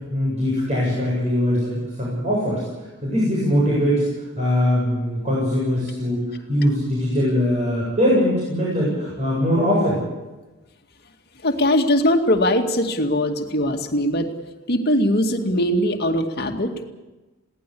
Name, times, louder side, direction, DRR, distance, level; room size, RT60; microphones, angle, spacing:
voice 1, 0.1-2.6 3.0-4.1 4.4-10.0, equal, 35° right, -5 dB, 7.9 m, -21 dB
voice 2, 11.4-14.3 14.7-16.9, left 1 dB, 45° left, 4 dB, 2.3 m, -21 dB
22.5 x 17.5 x 8.5 m, 1.1 s
head